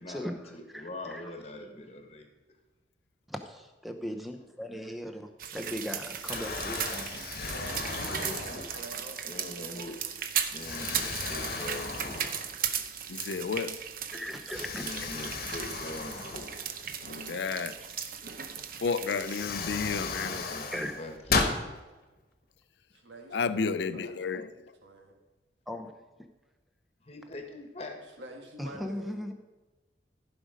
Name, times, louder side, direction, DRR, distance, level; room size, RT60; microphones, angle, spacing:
voice 1, 0.0-2.3 7.6-8.4 9.2-10.1 10.3-12.2 14.5-16.5 19.8-21.2 27.0-28.0, left 1 dB, 35° left, 1.4 m, -43 dB
voice 2, 0.7-1.3 3.3-7.1 14.1-14.8 20.7-20.9 25.7-25.9 28.6-29.3, equal, ahead, 0.7 m, -38 dB
sound 1, 5.4-19.5, right 8 dB, 50° right, 0.7 m, -37 dB
Explosion, 5.5-5.9 6.2-9.1 9.7-9.8 10.6-12.8 13.2-13.3 14.5-17.1 18.6-18.7 19.1-21.6, left 4 dB, 55° left, 1.2 m, -35 dB
voice 3, 7.3-9.9 22.9-24.5 24.8-25.2 28.2-29.2, right 1 dB, 85° right, 1.9 m, -47 dB
voice 4, 13.1-13.8 17.0-17.8 18.8-20.4 23.3-24.5, left 5 dB, 75° left, 0.5 m, -31 dB
15.0 x 5.2 x 5.1 m
head